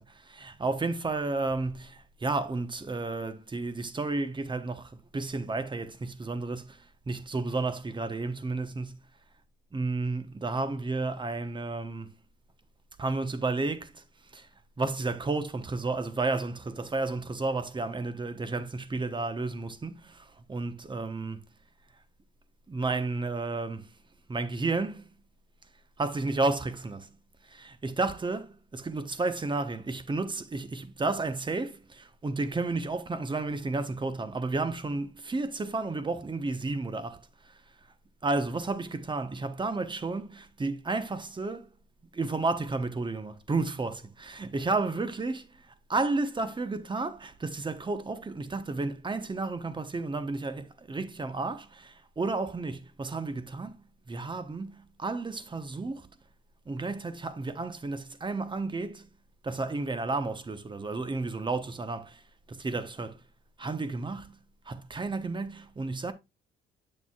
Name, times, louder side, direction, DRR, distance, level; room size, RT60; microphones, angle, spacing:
voice 1, 0.1-9.0 9.7-12.2 13.0-14.0 14.3-14.5 14.8-21.5 22.7-23.9 24.3-25.1 26.0-27.2 27.5-37.5 38.2-41.7 42.1-56.1 56.7-59.1 59.4-62.2 62.5-63.2 63.6-64.4 64.7-66.1, right 3 dB, 25° right, 1.0 m, -32 dB
8.4 x 6.9 x 2.4 m
cardioid pair, 90°, 20 cm